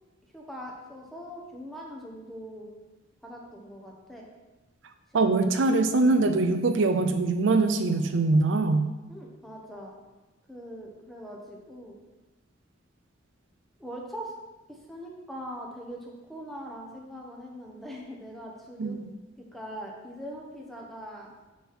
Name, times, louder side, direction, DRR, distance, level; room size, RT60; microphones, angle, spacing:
voice 1, 0.3-2.7 3.2-4.3 5.1-5.2 9.1-9.9 10.5-12.0 13.8-14.3 14.7-19.0 19.4-21.3, equal, ahead, -2 dB, 1.2 m, -41 dB
voice 2, 5.1-8.9 18.8-19.1, right 3 dB, 70° right, 7 dB, 0.5 m, -23 dB
6.9 x 6.1 x 4.3 m, 1.1 s
head